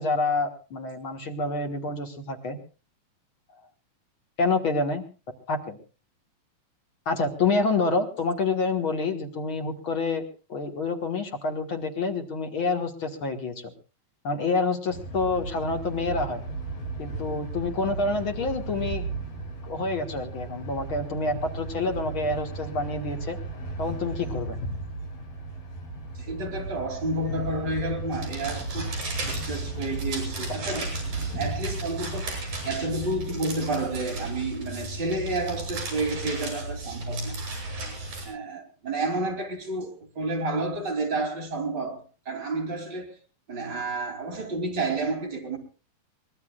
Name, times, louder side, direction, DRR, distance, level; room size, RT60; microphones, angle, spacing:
voice 1, 0.0-2.6 4.4-5.1 5.5-5.8 7.1-10.2 10.5-13.7 14.2-16.4 17.0-19.1 19.6-23.4 23.8-24.6 30.7-30.8, left 3 dB, 45° left, 1.8 m, -27 dB
sound 1, 14.9-33.1, right 2 dB, 65° left, 7.1 m, -35 dB
voice 2, 26.2-32.3 32.6-37.4 38.2-43.1 43.5-45.6, right 2 dB, 30° right, 3.7 m, -30 dB
sound 2, 28.1-38.2, right 2 dB, 55° right, 8.1 m, -34 dB
24.0 x 19.5 x 2.4 m
omnidirectional pair, 4.2 m